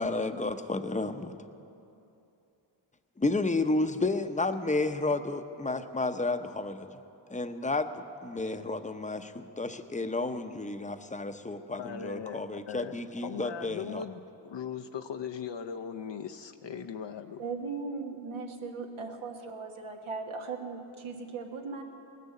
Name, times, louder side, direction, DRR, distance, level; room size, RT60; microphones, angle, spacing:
voice 1, 0.0-1.3 3.2-6.9 7.3-14.0, left 2 dB, 15° left, 8 dB, 0.8 m, -31 dB
voice 2, 11.7-12.9 13.2-17.4, left 7 dB, 60° left, 6 dB, 0.7 m, -39 dB
voice 3, 17.4-21.8, right 4 dB, 80° right, 2 dB, 1.5 m, -38 dB
19.5 x 6.7 x 8.4 m, 2.8 s
cardioid pair, 50°, 49 cm